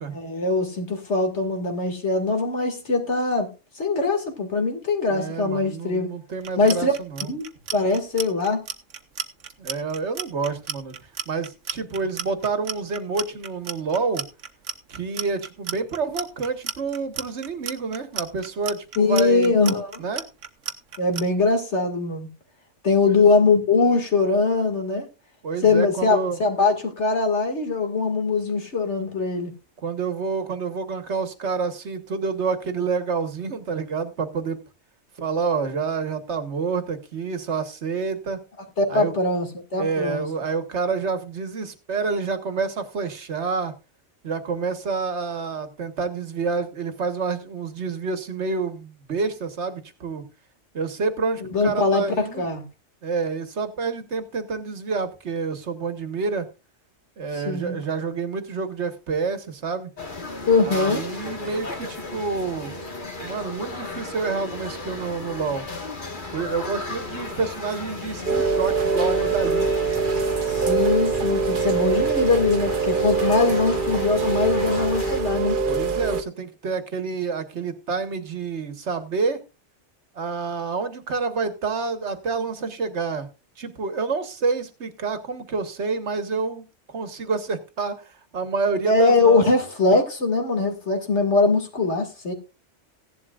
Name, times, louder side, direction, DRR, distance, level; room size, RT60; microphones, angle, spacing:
voice 1, 0.1-3.5 3.8-6.1 6.6-6.9 7.3-8.6 19.0-20.1 21.0-22.3 22.8-25.1 25.6-29.5 38.8-39.5 39.7-40.2 51.4-52.6 57.3-57.8 60.5-61.0 70.5-75.6 88.9-92.3, left 3 dB, 65° left, 2.5 m, -22 dB
voice 2, 5.1-7.3 9.6-10.9 11.3-14.3 14.9-19.6 20.0-20.2 23.0-23.3 25.4-26.4 29.8-34.6 35.2-38.4 38.9-39.1 39.8-43.7 44.2-50.3 50.7-52.4 53.0-56.5 57.2-59.9 60.6-62.7 63.2-65.6 66.3-69.7 75.7-79.4 80.1-83.3 83.6-88.0 88.3-89.4, right 4 dB, 65° right, 1.6 m, -28 dB
Clock, 6.4-21.2, right 8 dB, 85° right, 1.4 m, -33 dB
sound 1, 60.0-75.2, left 2 dB, 40° left, 1.8 m, -35 dB
Rain, 68.3-76.2, right 4 dB, 45° right, 1.1 m, -23 dB
16.0 x 11.0 x 2.4 m
omnidirectional pair, 1.2 m